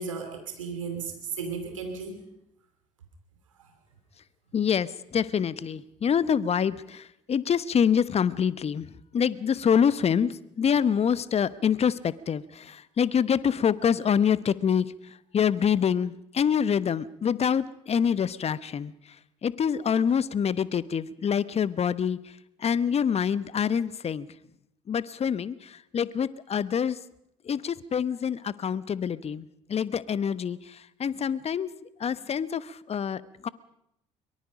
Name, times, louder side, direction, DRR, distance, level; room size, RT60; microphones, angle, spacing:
voice 1, 0.0-2.2, right 5 dB, 90° right, 4 dB, 2.7 m, -34 dB
voice 2, 4.5-8.9 9.1-14.9 15.3-18.9 19.4-22.2 22.6-24.3 24.9-27.0 27.4-31.7 32.0-33.5, left 7 dB, 40° left, 17 dB, 1.1 m, -26 dB
23.5 x 23.0 x 5.2 m, 0.79 s
hypercardioid pair, 55°, 16 cm